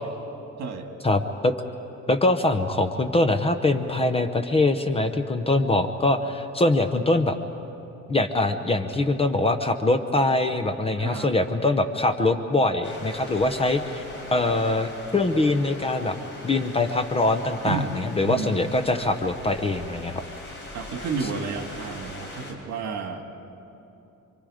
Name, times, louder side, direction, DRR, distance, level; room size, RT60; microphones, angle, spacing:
voice 1, 1.0-1.5 2.1-7.4 8.1-14.0 14.3-16.2 16.4-20.2, left 2 dB, 20° left, 8 dB, 0.7 m, -23 dB
voice 2, 11.0-11.3 17.6-17.9 18.2-18.7 20.7-23.2, right 4 dB, 60° right, 4 dB, 2.0 m, -31 dB
sound 1, 12.8-22.5, left 2 dB, 40° left, 3.9 m, -41 dB
27.5 x 24.0 x 5.0 m, 2.9 s
cardioid pair, 165°, 30 cm